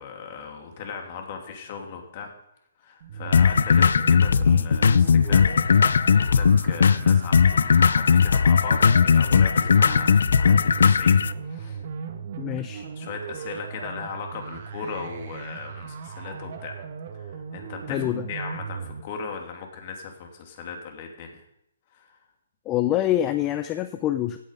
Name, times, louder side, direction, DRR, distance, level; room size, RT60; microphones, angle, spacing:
voice 1, 0.0-2.3 2.8-11.8 13.0-16.8 17.1-21.4 21.9-22.2, left 5 dB, 40° left, 3 dB, 2.9 m, -38 dB
sound 1, 3.0-19.0, right 6 dB, 50° right, 2.2 m, -37 dB
sound 2, 3.3-11.3, left 6 dB, 70° left, 0.5 m, -18 dB
voice 2, 12.4-12.9 17.9-18.3 22.7-24.4, left 12 dB, 20° left, 11 dB, 0.6 m, -25 dB
16.0 x 8.7 x 5.4 m, 0.78 s
hypercardioid pair, 145°, 0 cm